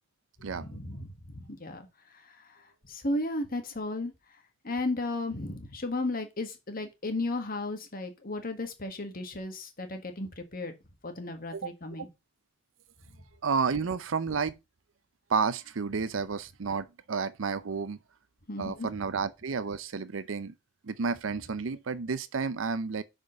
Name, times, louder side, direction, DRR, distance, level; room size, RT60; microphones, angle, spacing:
voice 1, 0.4-4.1 4.6-10.7 11.0-12.1 18.5-18.9, left 2 dB, 50° left, 1.7 m, -35 dB
voice 2, 13.4-14.6 15.3-18.0 18.6-20.5 20.8-23.0, right 5 dB, 80° right, 0.6 m, -31 dB
6.4 x 5.2 x 6.5 m
head